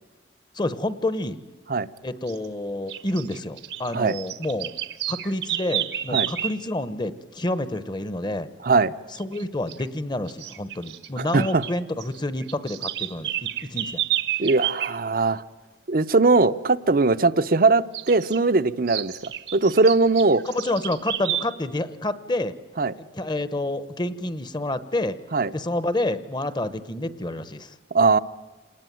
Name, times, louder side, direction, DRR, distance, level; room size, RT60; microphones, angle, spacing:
voice 1, 0.5-1.4 2.0-4.7 5.1-8.5 9.2-14.0 20.4-22.5 23.0-25.2 25.5-27.7, left 1 dB, 25° left, 14 dB, 1.0 m, -28 dB
sound 1, 2.3-2.5 2.9-6.6 9.2-9.4 9.7-9.8 10.3-11.7 12.0-14.9 17.9-18.4 18.9-21.5, right 12 dB, 80° right, 1.3 m, -30 dB
voice 2, 8.6-8.9 11.2-11.6 14.4-15.4 15.9-20.4 22.8-22.9 25.3-25.5 27.9-28.2, right 3 dB, 55° right, 14 dB, 0.7 m, -20 dB
27.0 x 19.5 x 9.2 m, 1.3 s
head